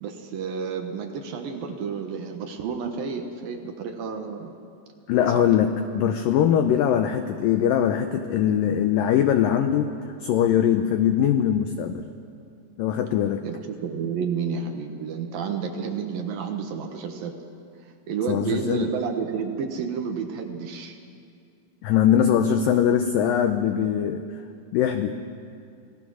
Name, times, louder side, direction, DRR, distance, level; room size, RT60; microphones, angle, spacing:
voice 1, 0.0-4.5 5.3-5.5 13.4-17.4 18.1-21.0, right 6 dB, 65° right, 4 dB, 2.7 m, -30 dB
voice 2, 5.1-9.9 10.2-12.0 12.8-13.4 18.3-18.9 21.8-24.2 24.7-25.1, left 9 dB, 85° left, 7 dB, 2.0 m, -21 dB
27.5 x 18.5 x 6.3 m, 2.4 s
omnidirectional pair, 5.0 m